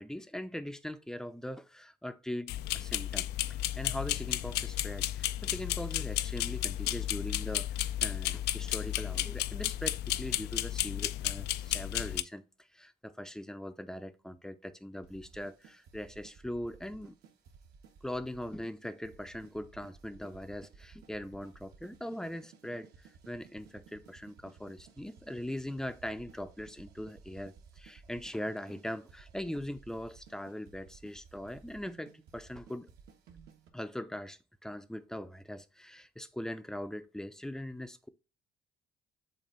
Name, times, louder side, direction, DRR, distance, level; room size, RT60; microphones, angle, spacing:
voice 1, 0.0-12.5 12.7-17.2 18.0-32.9 33.7-38.1, left 1 dB, 5° left, 0.5 m, -41 dB
sound 1, 2.5-12.2, left 14 dB, 80° left, 0.4 m, -33 dB
sound 2, 15.0-33.7, right 6 dB, 75° right, 1.3 m, -57 dB
7.3 x 2.6 x 5.3 m
cardioid pair, 110°, 17 cm